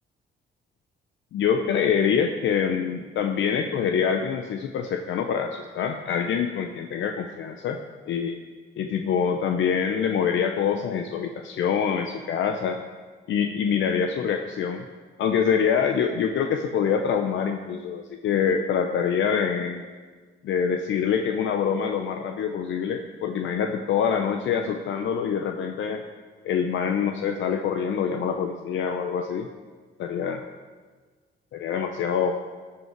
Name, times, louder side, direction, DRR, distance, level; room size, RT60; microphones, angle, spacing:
voice 1, 1.3-7.8 8.1-8.4 8.8-12.8 13.3-14.8 15.2-19.8 20.4-26.0 26.4-29.5 30.0-30.4 31.5-32.4, left 7 dB, 70° left, 5 dB, 0.7 m, -25 dB
16.5 x 5.7 x 4.6 m, 1.4 s
cardioid pair, 90°, 20 cm